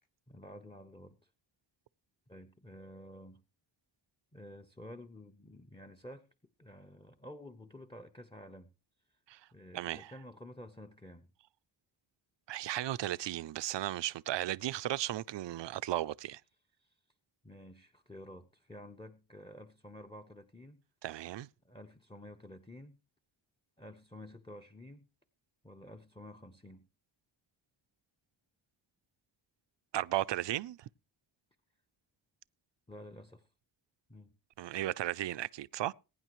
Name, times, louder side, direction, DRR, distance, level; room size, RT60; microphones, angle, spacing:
voice 1, 0.3-1.3 2.3-3.4 4.3-6.3 6.6-8.7 9.1-9.2 9.5-11.3 16.8-17.0 17.4-20.8 21.6-23.0 23.8-25.1 25.6-26.9 32.9-33.5 34.1-34.3, left 1 dB, 10° left, 0.8 m, -51 dB
voice 2, 9.7-10.1 12.5-16.4 21.0-21.5 29.9-30.8 34.6-35.9, right 14 dB, 65° right, 0.5 m, -35 dB
21.5 x 9.8 x 3.1 m
wide cardioid pair, 100°, 46 cm